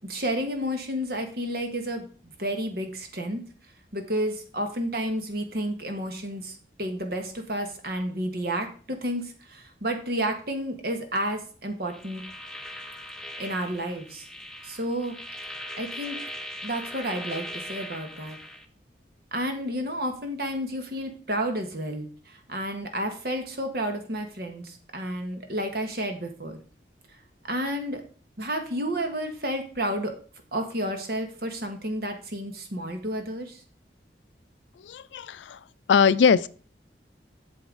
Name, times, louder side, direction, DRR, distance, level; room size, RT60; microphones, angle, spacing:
voice 1, 0.0-3.4 3.9-12.2 13.4-14.3 14.6-15.2 15.8-16.2 16.6-18.4 19.3-26.6 27.5-28.0 28.4-30.1 30.5-33.6, right 1 dB, 55° right, 1.5 m, -31 dB
sound 1, 11.9-18.6, equal, 5° left, 0.6 m, -39 dB
voice 2, 34.8-35.6 35.9-36.5, left 6 dB, 85° left, 0.4 m, -21 dB
8.1 x 7.0 x 3.9 m
head